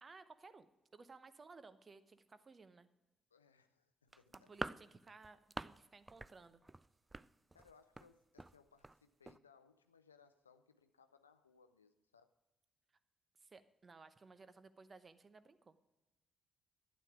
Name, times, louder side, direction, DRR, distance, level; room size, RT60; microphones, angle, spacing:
voice 1, 0.0-2.9 4.3-6.6 13.4-15.8, right 4 dB, 35° right, 13 dB, 0.9 m, -59 dB
voice 2, 3.3-4.6 7.5-12.4, left 5 dB, 90° left, 9 dB, 0.4 m, -67 dB
sound 1, 4.1-5.8 6.1-6.3 6.6-8.1 8.4-8.6 8.8-9.0 9.3-9.4, right 2 dB, 20° right, 0.3 m, -46 dB
12.0 x 9.2 x 5.0 m, 1.0 s
figure-of-eight pair, 40°, 0 cm